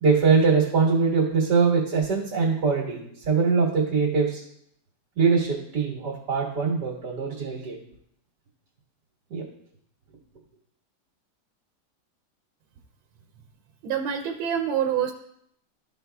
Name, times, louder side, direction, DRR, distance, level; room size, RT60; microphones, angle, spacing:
voice 1, 0.0-3.0 3.3-4.4 5.2-7.8 9.3-9.4, right 5 dB, 55° right, -4 dB, 2.1 m, -22 dB
voice 2, 13.8-15.1, right 9 dB, 90° right, 3 dB, 1.5 m, -26 dB
13.5 x 5.6 x 2.3 m, 0.72 s
omnidirectional pair, 2.2 m